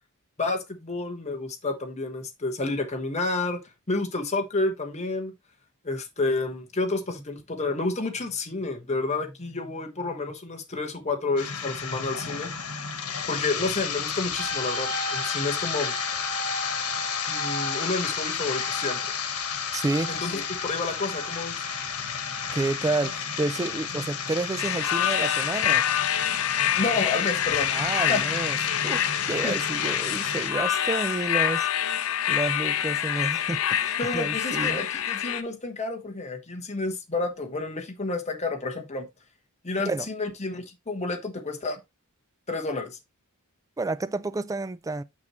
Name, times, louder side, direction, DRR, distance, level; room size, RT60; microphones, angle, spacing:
voice 1, 0.4-3.6 3.9-5.3 5.8-12.5 13.3-15.9 17.3-19.0 20.1-21.6 26.8-28.2 29.4-29.5 34.0-39.1 39.6-41.8 42.5-43.0, left 3 dB, 30° left, 1.2 m, -30 dB
sound 1, 11.4-30.5, left 7 dB, 85° left, 1.3 m, -32 dB
sound 2, 14.4-27.3 27.6-28.4 29.1-29.4, right 1 dB, 65° right, 2.3 m, -39 dB
voice 2, 19.7-20.1 22.5-25.8 27.7-28.6 28.8-31.7 32.3-34.9 39.9-40.1 43.8-45.0, right 2 dB, 15° right, 0.3 m, -30 dB
sound 3, 24.6-35.4, left 10 dB, 70° left, 0.6 m, -26 dB
6.2 x 6.1 x 3.1 m
head